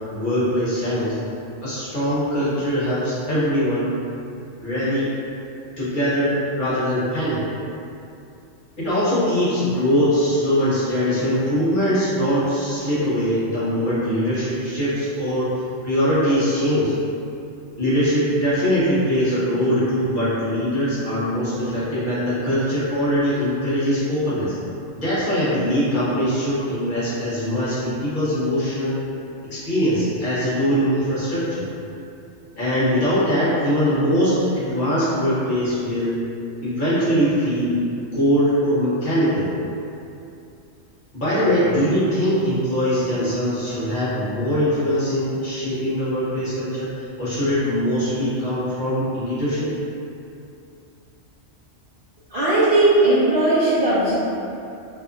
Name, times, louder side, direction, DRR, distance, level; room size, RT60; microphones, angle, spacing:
voice 1, 0.1-1.2 1.6-3.9 4.5-5.1 5.8-7.4 8.8-15.5 15.8-16.9 17.8-24.5 25.0-29.0 29.5-31.7 32.6-36.2 36.6-37.8 38.1-39.5 41.1-49.7, equal, 45° left, -12 dB, 0.9 m, -22 dB
voice 2, 52.3-54.2, right 2 dB, 60° right, -11 dB, 0.6 m, -17 dB
2.7 x 2.4 x 2.4 m, 2.7 s
omnidirectional pair, 1.3 m